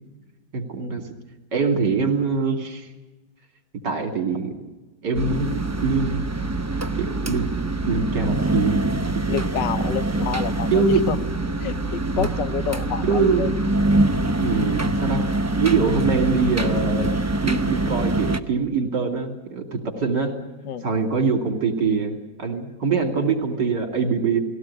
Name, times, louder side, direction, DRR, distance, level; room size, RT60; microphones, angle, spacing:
voice 1, 0.5-1.1 1.5-2.9 3.8-4.7 5.0-6.3 6.9-7.5 7.8-9.0 9.3-9.4 10.7-11.1 12.2-12.3 13.0-13.5 14.4-15.2 15.6-17.1 17.4-20.3 20.8-24.4, right 4 dB, 70° right, 4 dB, 3.2 m, -23 dB
sound 1, 5.1-18.4, right 2 dB, 25° right, 0.3 m, -24 dB
voice 2, 9.3-11.2 11.6-13.5 20.6-20.9, left 8 dB, 80° left, 11 dB, 1.7 m, -28 dB
19.5 x 17.0 x 9.7 m, 1.2 s
omnidirectional pair, 1.9 m